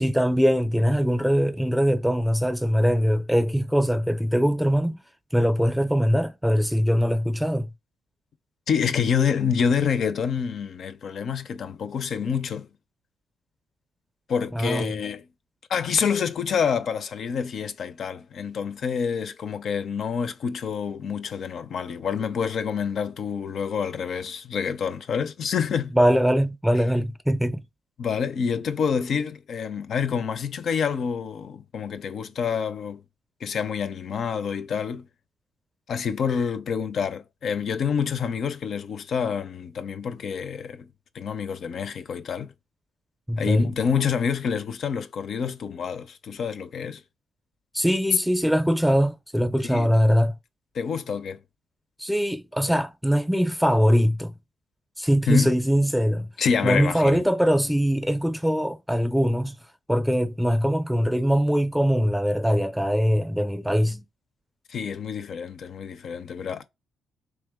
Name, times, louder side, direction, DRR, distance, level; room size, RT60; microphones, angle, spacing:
voice 1, 0.0-5.0 5.3-7.7 14.5-14.9 25.9-27.6 43.3-43.7 47.7-50.4 52.0-54.3 55.0-56.3 56.6-59.6 59.9-64.0, equal, 5° right, 0.6 m, -22 dB
voice 2, 8.7-12.7 14.3-15.2 15.7-25.9 28.0-33.0 33.4-35.1 35.9-40.9 41.1-42.5 43.4-47.0 49.6-49.9 50.7-51.4 55.3-55.5 56.4-57.2 64.7-66.6, left 6 dB, 60° left, 0.5 m, -27 dB
3.4 x 3.3 x 3.6 m
cardioid pair, 90°, 0 cm